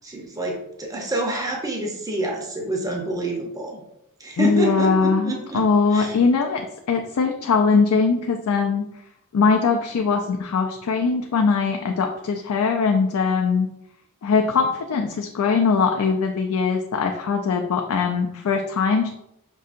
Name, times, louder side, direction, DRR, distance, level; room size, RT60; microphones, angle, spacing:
voice 1, 0.0-3.8 4.2-5.6 5.9-6.1, right 2 dB, 15° right, 0 dB, 0.6 m, -27 dB
voice 2, 4.4-8.9 9.3-13.7 14.2-19.1, left 5 dB, 75° left, 3 dB, 0.4 m, -21 dB
5.3 x 2.7 x 2.5 m, 0.80 s
head